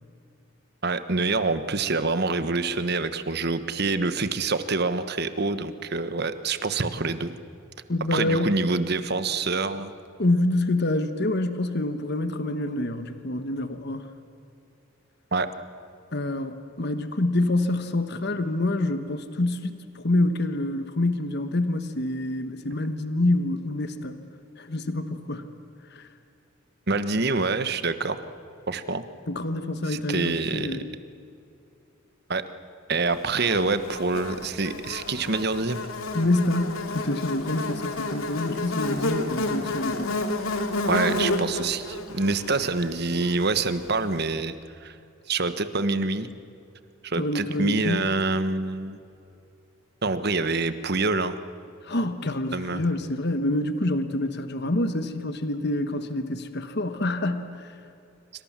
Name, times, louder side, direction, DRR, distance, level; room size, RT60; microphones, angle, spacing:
voice 1, 0.8-7.3 8.1-9.9 15.3-15.5 26.9-28.2 28.7-29.0 29.9-30.8 32.3-32.4 32.9-35.8 40.9-44.5 44.8-44.9 45.3-46.3 47.0-49.0 50.0-51.4 52.5-52.8, right 3 dB, 50° right, 11 dB, 1.3 m, -26 dB
voice 2, 7.9-8.6 10.2-14.1 16.1-24.2 24.6-25.5 25.9-26.1 29.3-30.9 36.1-40.1 47.1-48.1 51.8-57.7, left 2 dB, 50° left, 9 dB, 1.3 m, -27 dB
Buzz, 33.4-43.8, left 2 dB, 85° left, 2.5 m, -30 dB
26.0 x 25.5 x 7.4 m, 2.6 s
head